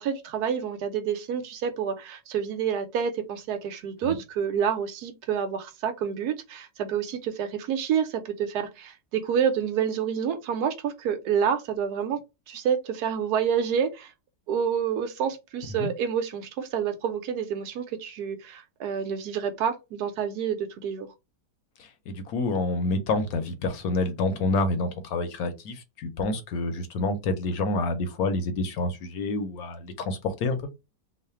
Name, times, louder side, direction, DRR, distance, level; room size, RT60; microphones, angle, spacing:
voice 1, 0.0-12.2 12.5-14.1 14.5-21.1, right 7 dB, 70° right, 1.2 m, -28 dB
voice 2, 21.8-30.7, left 2 dB, 65° left, 1.0 m, -28 dB
3.2 x 2.1 x 4.2 m
omnidirectional pair, 1.9 m